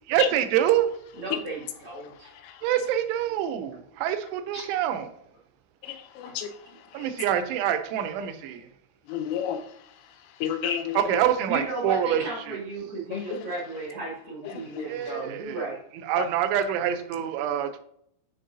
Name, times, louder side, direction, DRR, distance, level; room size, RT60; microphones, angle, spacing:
voice 1, 0.1-0.9 2.6-5.1 6.9-8.7 10.9-12.2 12.5-12.6 14.9-15.7 16.0-17.8, right 10 dB, 85° right, 2.9 m, -26 dB
voice 2, 1.2-2.3 4.5-4.6 6.2-6.3 11.5-15.8, right 2 dB, 65° right, 1.3 m, -34 dB
voice 3, 5.8-6.6 6.9-7.1 9.1-9.6 10.4-11.1 13.1-13.4 14.8-14.9 16.2-16.3, left 9 dB, 85° left, 3.2 m, -31 dB
10.0 x 4.3 x 2.6 m
omnidirectional pair, 5.6 m